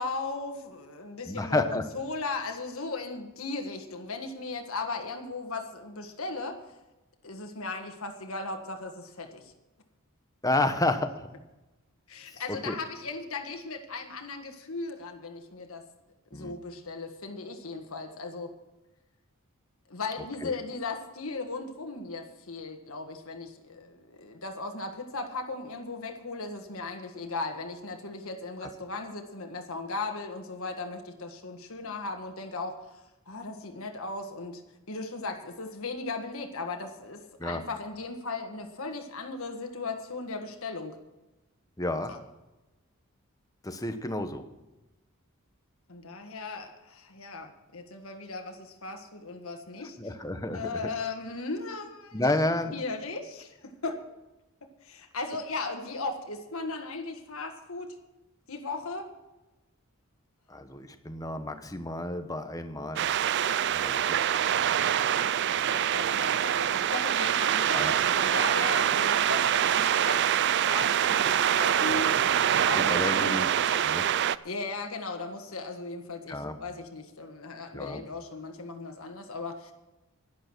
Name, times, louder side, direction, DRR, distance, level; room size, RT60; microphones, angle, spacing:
voice 1, 0.0-6.6 7.2-9.5 12.1-15.8 16.3-18.5 19.9-32.8 33.3-34.6 34.9-41.0 42.1-42.2 45.9-50.0 50.5-52.2 52.7-54.0 54.8-57.9 58.5-59.1 65.3-67.9 68.2-70.2 70.6-72.1 72.7-73.4 74.4-79.7, left 3 dB, 70° left, 4 dB, 1.6 m, -37 dB
voice 2, 1.3-1.8 10.4-11.3 12.5-12.8 16.3-16.5 20.4-20.5 28.6-28.7 37.4-37.6 41.8-42.2 43.6-44.4 50.0-50.7 52.1-52.8 60.5-63.0 63.7-64.2 67.7-67.9 72.8-74.1 76.3-76.6 77.7-78.0, left 2 dB, 15° left, 8 dB, 1.0 m, -31 dB
sound 1, 63.0-74.4, right 9 dB, 50° right, 0.4 m, -25 dB
12.0 x 11.0 x 6.1 m, 1.0 s
head